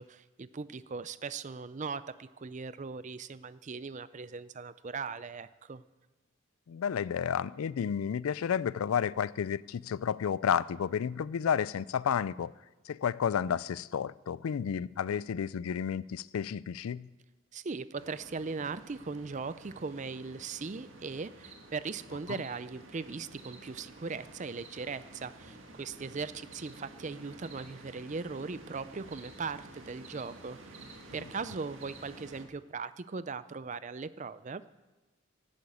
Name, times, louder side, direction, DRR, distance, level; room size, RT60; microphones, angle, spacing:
voice 1, 0.0-5.8 17.5-30.6 31.1-34.6, right 4 dB, 35° right, 0.5 m, -39 dB
voice 2, 6.7-12.5 12.9-17.1 22.3-22.4, left 8 dB, 90° left, 0.4 m, -31 dB
sound 1, 17.9-32.4, right 2 dB, 65° right, 1.9 m, -51 dB
12.0 x 11.5 x 8.5 m
head